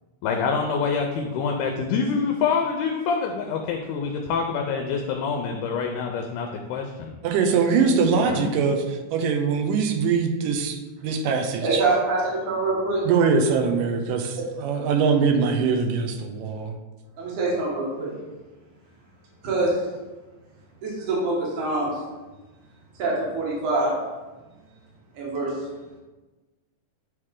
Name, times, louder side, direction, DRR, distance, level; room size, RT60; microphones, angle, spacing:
voice 1, 0.2-7.1 8.3-8.5, left 5 dB, 80° left, 3 dB, 2.1 m, -26 dB
voice 2, 7.2-11.8 13.0-16.8, right 5 dB, 85° right, 3 dB, 2.3 m, -22 dB
voice 3, 11.6-13.0 14.4-14.5 17.2-18.1 19.4-19.7 20.8-21.9 23.0-23.9 25.1-25.5, right 2 dB, 70° right, -5 dB, 2.9 m, -25 dB
9.2 x 3.2 x 3.7 m, 1.2 s
omnidirectional pair, 3.7 m